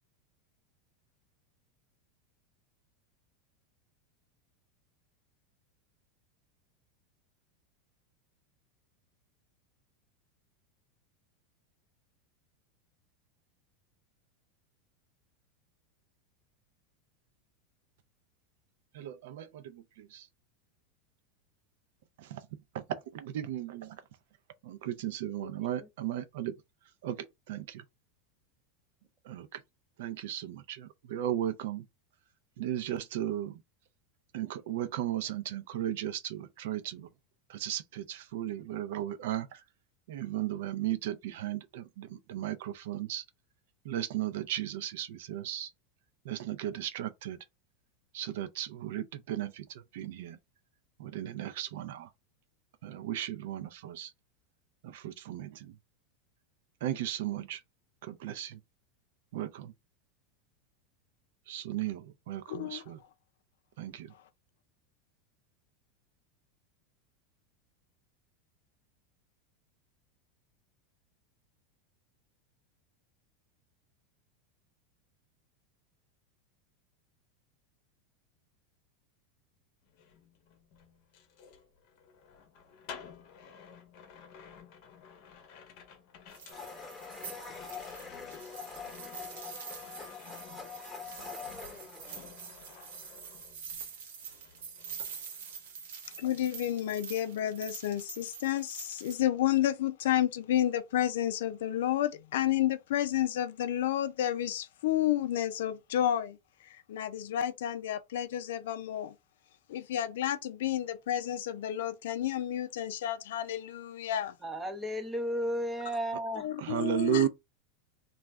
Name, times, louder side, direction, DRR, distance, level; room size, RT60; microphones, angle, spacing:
voice 1, 18.9-20.3 22.2-22.5 22.7-24.0 24.6-26.5 27.0-27.2 27.5-27.8 29.2-29.6 30.0-31.8 32.6-33.5 34.3-37.1 37.5-39.6 40.1-43.2 43.8-45.7 46.2-47.4 48.1-50.4 51.0-52.1 52.8-54.1 54.8-55.7 56.8-57.6 58.0-58.6 59.3-59.7 61.5-63.0 63.8-64.1 116.6-117.3, right 12 dB, 70° right, 0.5 m, -35 dB
voice 2, 62.5-62.8 96.2-106.4 106.6-109.1 109.7-114.4 116.4-117.3, left 12 dB, 80° left, 0.4 m, -31 dB
sound 1, 79.8-94.0 94.3-95.8 96.0-96.4, left 7 dB, 50° left, 0.7 m, -53 dB
sound 2, 86.3-99.2, right 6 dB, 90° right, 0.9 m, -46 dB
Domestic sounds home sounds, 86.5-93.1, left 5 dB, 10° left, 1.0 m, -45 dB
voice 3, 114.4-116.5, equal, 10° right, 0.6 m, -33 dB
2.3 x 2.1 x 3.4 m
supercardioid pair, 145°, 0 cm